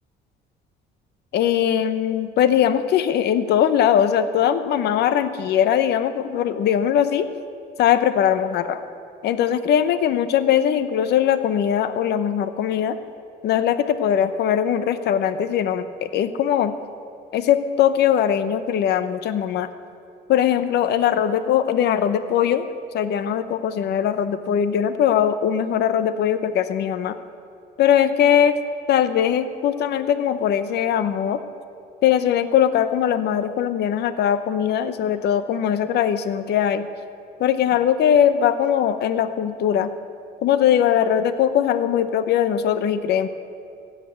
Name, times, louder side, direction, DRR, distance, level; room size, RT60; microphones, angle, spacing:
voice 1, 1.3-7.3 7.8-8.8 9.2-13.0 13.4-16.7 17.3-19.7 20.3-22.7 22.9-27.2 27.8-28.6 28.9-31.4 32.0-36.9 37.4-39.9 40.4-43.3, left 9 dB, 65° left, 12 dB, 0.9 m, -20 dB
16.0 x 8.2 x 8.6 m, 2.4 s
cardioid pair, 120°, 18 cm